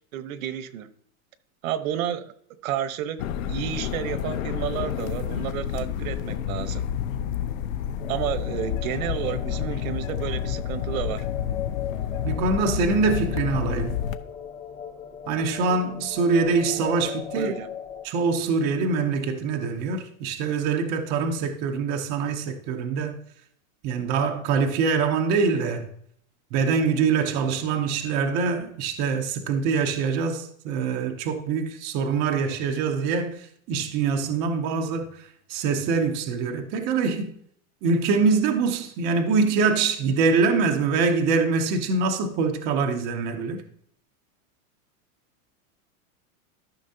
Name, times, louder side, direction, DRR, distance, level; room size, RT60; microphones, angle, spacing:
voice 1, 0.1-0.9 1.6-2.3 2.6-6.8 8.1-11.3 17.4-17.7, right 10 dB, 75° right, 0.9 m, -31 dB
sound 1, 3.2-14.2, left 9 dB, 70° left, 0.7 m, -29 dB
sound 2, 8.0-18.1, left 8 dB, 20° left, 0.8 m, -39 dB
voice 2, 12.2-14.0 15.3-17.5 18.0-23.1 23.8-25.9 26.5-35.1 35.5-37.3 37.8-43.6, right 4 dB, 20° right, 0.3 m, -24 dB
13.0 x 6.0 x 2.7 m
supercardioid pair, 160°, 42 cm